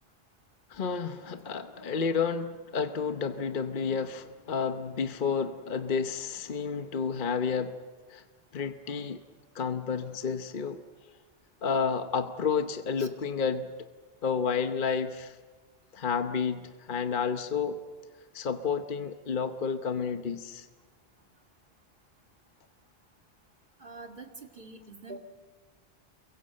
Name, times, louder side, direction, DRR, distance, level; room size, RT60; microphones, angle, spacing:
voice 1, 0.7-7.8 8.1-8.2 8.5-9.2 9.5-10.8 11.6-13.7 14.2-15.4 15.9-17.8 18.3-20.7, left 6 dB, 50° left, 8 dB, 1.1 m, -30 dB
voice 2, 23.8-25.2, right 3 dB, 50° right, 4 dB, 2.4 m, -45 dB
29.0 x 23.0 x 7.7 m, 1.4 s
omnidirectional pair, 1.1 m